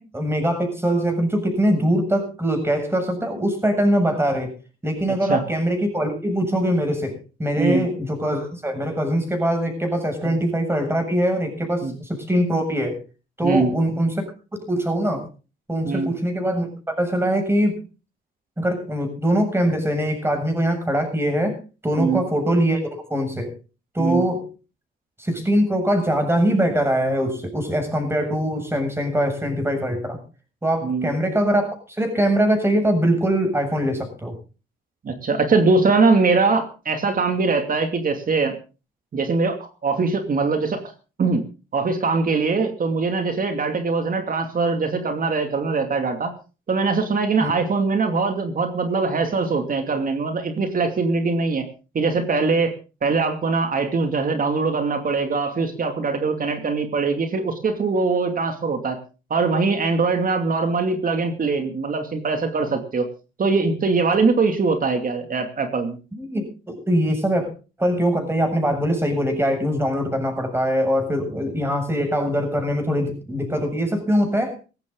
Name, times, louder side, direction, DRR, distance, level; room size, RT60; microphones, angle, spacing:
voice 1, 0.1-4.5 4.8-7.1 7.4-13.0 13.4-14.3 14.5-15.2 15.7-17.8 18.6-21.6 21.8-23.5 23.9-24.5 25.2-30.2 30.6-34.3 47.4-47.5 66.1-67.5 67.8-74.6, equal, 10° right, 4 dB, 7.3 m, -22 dB
voice 2, 35.0-38.5 39.1-40.8 41.2-41.4 41.7-46.3 46.7-51.6 51.9-52.7 53.0-59.0 59.3-63.1 63.4-66.0, right 4 dB, 45° right, 6 dB, 2.6 m, -22 dB
18.0 x 14.5 x 3.9 m, 0.35 s
cardioid pair, 90°, 20 cm